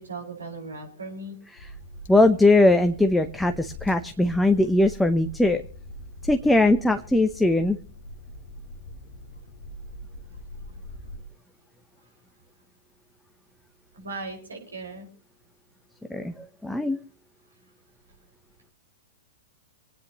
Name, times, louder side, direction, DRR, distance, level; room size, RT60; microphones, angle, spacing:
voice 1, 0.0-1.4 13.9-15.1, right 3 dB, 85° right, 1 dB, 5.8 m, -37 dB
sound 1, 1.6-11.2, left 1 dB, 60° left, 1.3 m, -42 dB
voice 2, 2.1-5.6 6.3-7.8 16.1-17.0, left 2 dB, 5° left, 6 dB, 0.8 m, -20 dB
26.5 x 9.8 x 3.1 m, 0.40 s
figure-of-eight pair, 110°, 0 cm